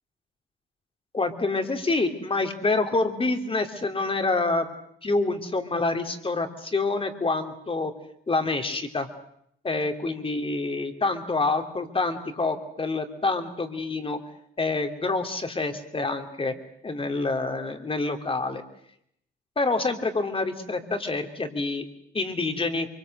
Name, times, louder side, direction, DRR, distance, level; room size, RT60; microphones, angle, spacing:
voice 1, 1.1-4.7 5.0-7.9 8.3-9.1 9.6-14.2 14.6-16.5 16.8-18.6 19.6-21.8 22.1-22.9, left 3 dB, 25° left, 6 dB, 2.9 m, -27 dB
23.5 x 23.5 x 7.9 m, 0.71 s
cardioid pair, 90°, 20 cm